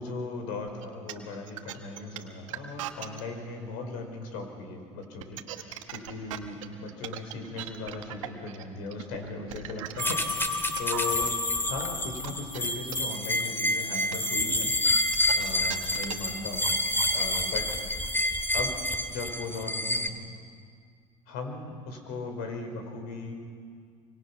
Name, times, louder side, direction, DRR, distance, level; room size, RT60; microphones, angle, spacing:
voice 1, 0.0-11.3 11.6-17.6 18.5-18.8 19.1-20.1 21.3-23.3, left 3 dB, 70° left, 4 dB, 4.6 m, -38 dB
sound 1, 0.7-3.2 5.0-11.3 11.8-16.4, right 12 dB, 85° right, 1.3 m, -39 dB
sound 2, 10.0-20.1, left 1 dB, 15° left, 2.1 m, -28 dB
25.0 x 24.5 x 5.8 m, 2.1 s
hypercardioid pair, 65°, 16 cm